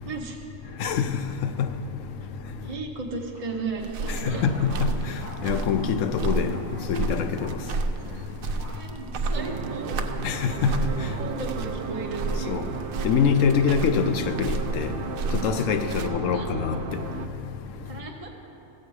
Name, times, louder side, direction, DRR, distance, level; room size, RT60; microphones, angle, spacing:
voice 1, 0.0-0.4 2.6-4.4 8.6-10.0 11.0-12.7 15.8-16.5 17.8-18.3, right 3 dB, 30° right, 0.8 m, -35 dB
Thunder, 3.2-13.1 13.9-14.0 15.0-15.1 15.9-16.1, equal, 50° left, 1.8 m, -41 dB
sound 1, 3.8-16.1, right 3 dB, 85° right, 1.1 m, -32 dB
voice 2, 5.4-6.5 6.9-7.3 10.2-10.7 12.5-12.6 13.0-14.9 15.4-16.8, left 7 dB, 75° left, 0.9 m, -24 dB
sound 2, 9.3-17.3, right 6 dB, 60° right, 0.6 m, -34 dB
15.0 x 8.3 x 4.7 m
omnidirectional pair, 1.4 m